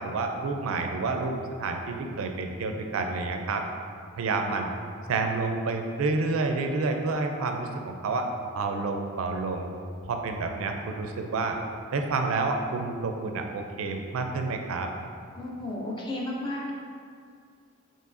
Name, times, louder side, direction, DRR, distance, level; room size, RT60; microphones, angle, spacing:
voice 1, 0.0-3.6 4.1-4.7 5.1-8.3 8.5-9.7 10.0-11.6 11.9-14.9, right 3 dB, 85° right, 4 dB, 0.4 m, -29 dB
voice 2, 15.3-16.7, left 1 dB, 25° left, -3 dB, 0.5 m, -33 dB
4.6 x 3.0 x 2.5 m, 2.3 s
head